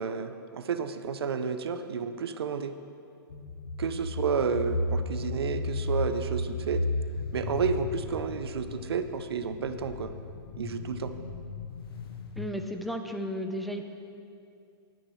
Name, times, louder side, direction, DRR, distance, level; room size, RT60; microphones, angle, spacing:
voice 1, 0.0-2.8 3.8-6.8 7.3-10.1 10.6-11.1, right 6 dB, 85° right, 10 dB, 0.7 m, -31 dB
sound 1, 3.3-12.5, left 2 dB, 70° left, 1.2 m, -34 dB
voice 2, 12.4-13.8, equal, ahead, 3 dB, 0.7 m, -34 dB
18.5 x 9.0 x 3.2 m, 2.5 s
hypercardioid pair, 135°, 13 cm